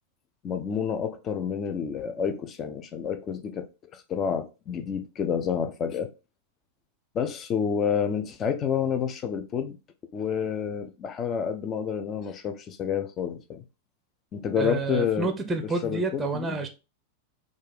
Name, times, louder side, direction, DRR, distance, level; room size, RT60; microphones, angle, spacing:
voice 1, 0.4-3.7 3.9-6.1 7.1-9.8 10.1-13.6 14.3-15.3 15.8-16.6, left 7 dB, 30° left, 0.5 m, -29 dB
voice 2, 14.6-16.7, right 3 dB, 15° right, 0.6 m, -29 dB
4.2 x 2.4 x 3.4 m
figure-of-eight pair, 90°, 0 cm